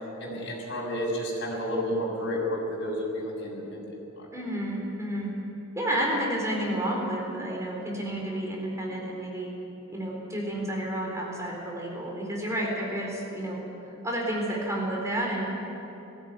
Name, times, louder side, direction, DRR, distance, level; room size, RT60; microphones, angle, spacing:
voice 1, 0.2-4.3, equal, 60° left, -3 dB, 6.6 m, -31 dB
voice 2, 4.3-5.3 5.8-9.5 9.9-13.6 14.0-15.5, right 1 dB, 15° right, -2 dB, 4.2 m, -30 dB
20.0 x 16.0 x 9.5 m, 2.9 s
head